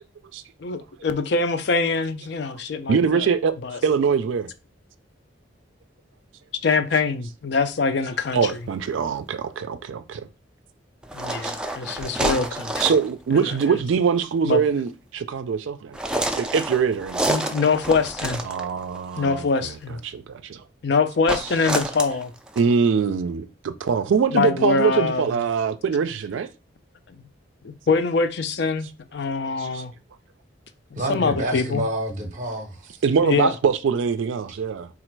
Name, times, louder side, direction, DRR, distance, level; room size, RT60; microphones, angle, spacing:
voice 1, 0.6-3.3 3.6-3.8 6.6-8.4 11.1-12.8 13.3-13.5 14.5-14.6 17.3-18.4 19.2-20.0 20.8-22.3 24.3-25.4 27.6-29.9 31.1-31.8 33.2-33.5, left 4 dB, 60° left, 0.5 m, -24 dB
voice 2, 2.9-3.5 3.8-4.5 8.3-10.3 11.4-11.5 12.8-16.0 16.3-17.2 18.4-20.6 22.6-26.5 29.6-29.8 33.0-34.9, right 6 dB, 80° right, 0.4 m, -23 dB
sound 1, 8.2-8.5 11.0-13.1 13.5-13.8 15.9-19.0 21.3-22.7, right 1 dB, 5° right, 0.3 m, -28 dB
voice 3, 31.0-33.0, right 1 dB, 40° right, 0.7 m, -28 dB
4.0 x 2.4 x 4.5 m
head